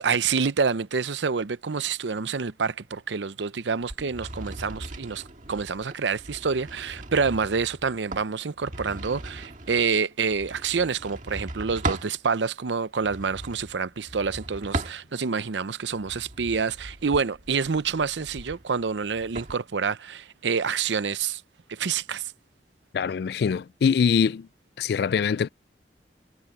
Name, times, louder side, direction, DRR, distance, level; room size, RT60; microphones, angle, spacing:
voice 1, 0.0-21.4 21.7-22.3, right 5 dB, 80° right, 0.6 m, -27 dB
sound 1, 3.9-12.2 13.0-15.4 15.9-19.5, right 2 dB, 45° right, 1.8 m, -38 dB
voice 2, 22.9-24.5 24.8-25.5, left 6 dB, 60° left, 0.3 m, -23 dB
head